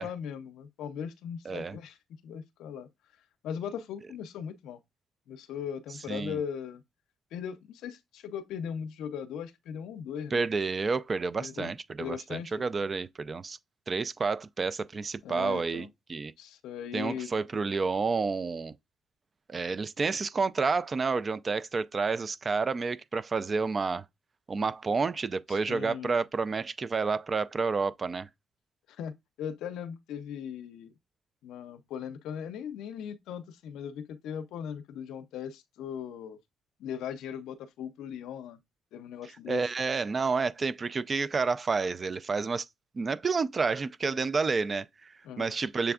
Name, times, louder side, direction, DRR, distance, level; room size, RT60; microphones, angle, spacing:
voice 1, 0.0-2.0 2.2-2.9 3.4-4.8 5.3-6.8 7.3-10.4 11.4-11.7 12.0-12.5 15.2-15.9 16.4-17.3 25.5-26.2 28.9-30.9 31.4-36.4 36.8-38.6 38.9-39.6 45.2-45.5, left 8 dB, 85° left, 0.5 m, -38 dB
voice 2, 1.5-1.8 6.1-6.4 10.3-13.6 13.9-16.3 16.9-18.7 19.5-24.0 24.5-28.3 39.5-42.6 43.0-45.9, right 4 dB, 35° right, 0.3 m, -30 dB
6.8 x 3.3 x 2.3 m
cardioid pair, 90°, 0 cm